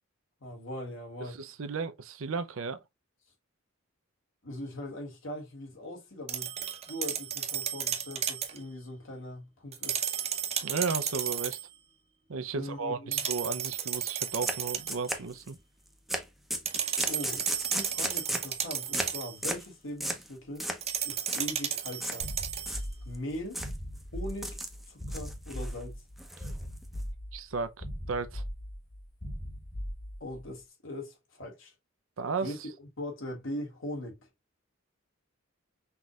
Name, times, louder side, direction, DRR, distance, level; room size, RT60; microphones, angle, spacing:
voice 1, 0.4-1.4 4.4-6.5 6.9-10.0 12.5-13.2 17.0-20.7 21.0-22.3 23.0-23.6 24.1-24.6 24.9-26.0 30.2-31.7 32.4-34.3, left 1 dB, 65° left, 2.1 m, -40 dB
voice 2, 1.3-2.8 10.6-11.6 12.3-15.6 27.3-28.4 32.2-32.5, right 4 dB, 70° right, 0.6 m, -34 dB
sound 1, 6.3-8.6 9.7-11.7 13.1-15.1 16.7-19.4 20.8-22.8, right 9 dB, 30° right, 0.8 m, -33 dB
sound 2, 14.4-14.6 14.9-15.6 16.1-16.2 16.5-18.5 18.9-19.1 19.4-19.7 20.0-20.3 20.6-20.9 21.2-21.4 22.0-22.2 22.6-23.2 23.5-23.8 24.3-24.8 25.1-25.7 26.2-27.0, right 1 dB, ahead, 0.7 m, -35 dB
sound 3, 22.2-30.5, equal, 45° left, 1.6 m, -39 dB
5.8 x 3.2 x 2.3 m
head